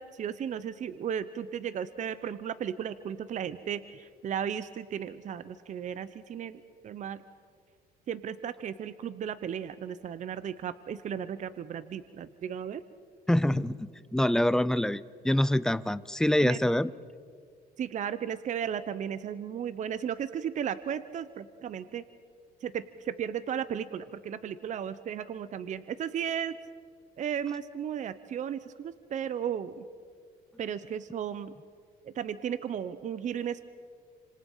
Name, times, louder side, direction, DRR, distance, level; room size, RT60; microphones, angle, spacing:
voice 1, 0.0-7.2 8.1-12.8 16.4-16.6 17.8-22.0 22.6-26.6 27.2-29.8 30.6-31.5 32.0-33.7, right 8 dB, 45° right, 14 dB, 0.8 m, -35 dB
voice 2, 13.3-16.9, left 1 dB, 5° left, 16 dB, 0.6 m, -26 dB
29.5 x 26.5 x 5.6 m, 2.1 s
cardioid pair, 110°, 17 cm